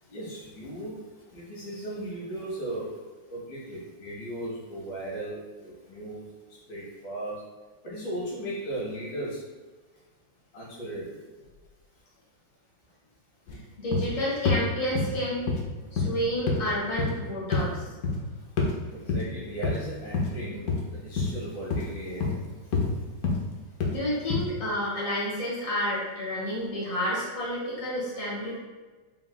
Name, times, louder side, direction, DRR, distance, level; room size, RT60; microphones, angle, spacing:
voice 1, 0.0-3.0 3.3-7.4 7.8-9.5 10.5-11.2 18.2-18.5 18.9-23.7, right 1 dB, 80° left, -6 dB, 2.3 m, -37 dB
sound 1, 13.5-13.6 13.9-14.1 14.5-14.6 15.0-15.1 15.5-15.7 16.0-16.1 16.5-16.6 17.0-17.2 17.5-17.7 18.0-18.2 18.6-18.7 19.1-19.3 19.6-19.8 20.1-20.4 20.7-20.8 21.2-21.3 21.7-21.9 22.2-22.4 22.7-22.9 23.2-23.4 23.8-24.0 24.3-24.5, left 4 dB, 65° left, 1.0 m, -26 dB
voice 2, 13.8-15.5 15.9-17.8 23.9-28.6, equal, 45° left, -7 dB, 1.9 m, -30 dB
5.5 x 3.4 x 2.2 m, 1.3 s
omnidirectional pair, 2.1 m